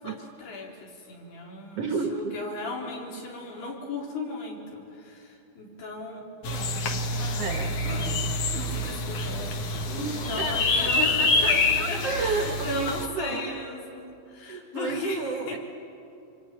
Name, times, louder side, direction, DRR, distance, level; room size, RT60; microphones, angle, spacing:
voice 1, 0.0-6.2 7.9-9.4 10.0-15.6, left 3 dB, 80° left, -1 dB, 5.7 m, -36 dB
voice 2, 1.8-2.4 7.4-7.8 10.0-13.5 14.5-15.6, right 4 dB, 65° right, 4 dB, 1.5 m, -32 dB
sound 1, 6.4-13.1, left 2 dB, 60° left, 1.6 m, -27 dB
25.0 x 25.0 x 9.2 m, 2.7 s
omnidirectional pair, 4.5 m